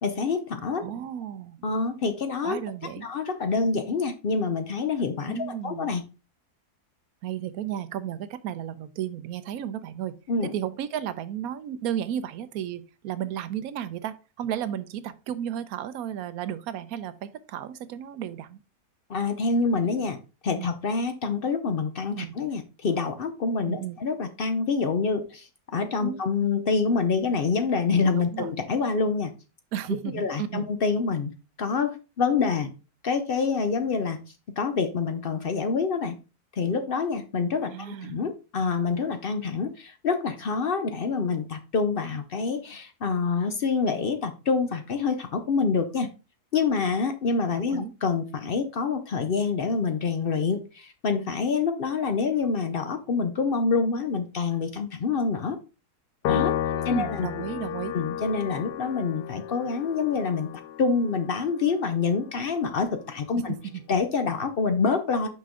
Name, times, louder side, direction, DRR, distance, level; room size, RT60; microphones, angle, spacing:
voice 1, 0.0-0.8 1.6-2.6 3.0-6.0 10.3-10.5 19.1-20.2 20.4-29.3 30.1-31.3 31.6-32.7 33.0-34.2 34.6-36.2 36.6-46.1 46.5-55.6 56.3-56.6 56.8-57.3 57.9-60.5 60.8-63.5 63.9-65.3, left 4 dB, 60° left, 8 dB, 0.6 m, -26 dB
voice 2, 0.8-1.6 2.4-3.1 5.3-5.9 7.2-10.1 10.4-18.6 20.6-20.7 22.2-22.3 23.7-24.0 26.0-26.5 28.2-28.5 29.7-30.7 37.6-38.2 47.6-47.9 56.7-58.0 63.3-63.6, right 10 dB, 70° right, 12 dB, 1.1 m, -34 dB
Piano, 56.2-62.8, left 10 dB, 85° left, 1.2 m, -33 dB
5.8 x 5.2 x 3.6 m, 0.32 s
omnidirectional pair, 1.7 m